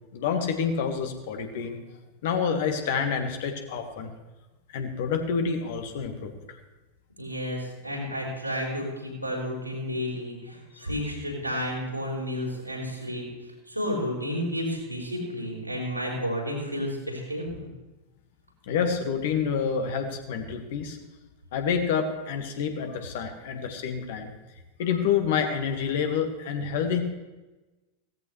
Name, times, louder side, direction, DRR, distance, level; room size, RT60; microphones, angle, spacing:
voice 1, 0.1-1.8 2.2-4.1 4.7-6.4 18.7-21.0 21.5-24.3 24.8-27.0, left 6 dB, 55° left, 5 dB, 1.8 m, -28 dB
voice 2, 7.2-13.2 13.7-17.7, equal, 90° right, -4 dB, 4.6 m, -31 dB
17.0 x 14.5 x 3.3 m, 1.1 s
figure-of-eight pair, 90°, 0 cm